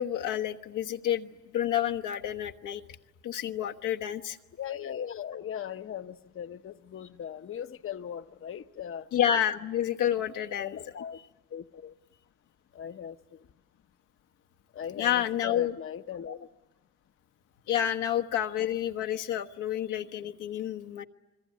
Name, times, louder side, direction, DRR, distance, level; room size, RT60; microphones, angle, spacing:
voice 1, 0.0-2.8 3.2-4.4 9.1-10.8 15.0-15.7 17.7-21.0, left 10 dB, 85° left, 1.3 m, -29 dB
voice 2, 4.5-9.1 10.6-11.2 11.5-11.9 12.7-13.5 14.7-16.5, left 9 dB, 45° left, 0.8 m, -39 dB
28.0 x 21.5 x 9.4 m
cardioid pair, 90°, 30 cm